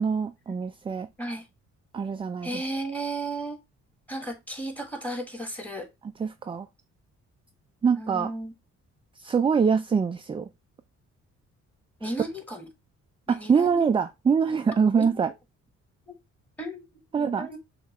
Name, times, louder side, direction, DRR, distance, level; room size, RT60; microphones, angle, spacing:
voice 1, 0.0-1.1 1.9-2.6 6.2-6.7 7.8-8.3 9.2-10.5 12.0-12.1 13.3-15.3 17.1-17.5, right 6 dB, 20° right, 0.3 m, -24 dB
voice 2, 2.4-3.6 4.1-5.9 8.0-8.5 12.0-12.7 13.3-13.9 15.0-15.1 16.1-16.2 16.6-16.9 17.1-17.6, right 2 dB, 5° left, 1.4 m, -34 dB
6.4 x 2.4 x 3.1 m
cardioid pair, 90°, 30 cm